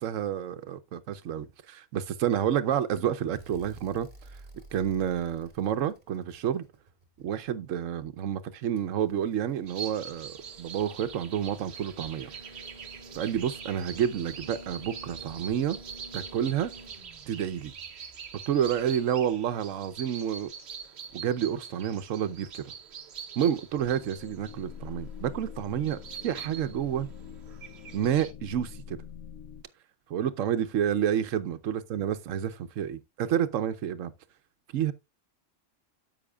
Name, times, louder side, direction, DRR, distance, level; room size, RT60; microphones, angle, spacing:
voice 1, 0.0-4.1 4.7-6.7 7.2-12.3 13.1-15.8 16.1-16.7 17.3-17.7 18.5-20.5 21.1-22.7 23.4-27.1 27.9-29.0 30.1-34.1 34.7-34.9, right 9 dB, 90° right, 1.1 m, -29 dB
sound 1, 3.3-7.5 8.8-20.0 21.5-21.6, right 2 dB, 40° right, 2.0 m, -51 dB
sound 2, 9.7-28.3, right 7 dB, 60° right, 1.1 m, -44 dB
sound 3, 23.8-29.6, left 7 dB, 80° left, 1.0 m, -45 dB
10.0 x 7.6 x 2.2 m
omnidirectional pair, 1.3 m